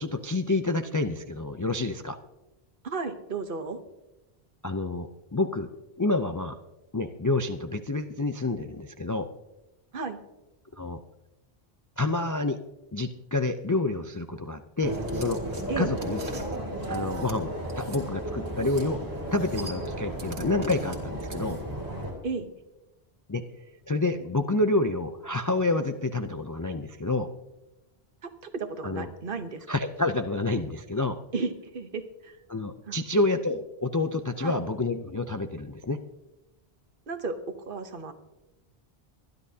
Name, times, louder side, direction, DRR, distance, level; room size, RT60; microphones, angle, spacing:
voice 1, 0.0-2.2 4.6-5.7 6.0-6.5 6.9-9.3 10.8-11.0 12.0-12.6 12.9-15.4 15.8-16.2 16.9-17.5 17.8-19.0 19.3-21.6 23.3-23.4 23.9-27.3 28.8-29.1 29.7-31.2 32.5-36.0, left 2 dB, 30° left, 7 dB, 0.4 m, -28 dB
voice 2, 2.8-3.8 9.9-10.2 15.7-15.9 22.2-22.5 28.2-29.7 31.3-32.4 32.9-33.0 34.4-34.5 37.1-38.1, right 4 dB, 55° right, 9 dB, 1.1 m, -34 dB
sound 1, 14.8-22.1, right 1 dB, 20° right, 3.5 m, -34 dB
sound 2, 14.9-18.0 18.5-18.9 19.2-21.8, right 3 dB, 85° right, 2.0 m, -44 dB
24.5 x 10.5 x 2.8 m, 0.99 s
omnidirectional pair, 1.1 m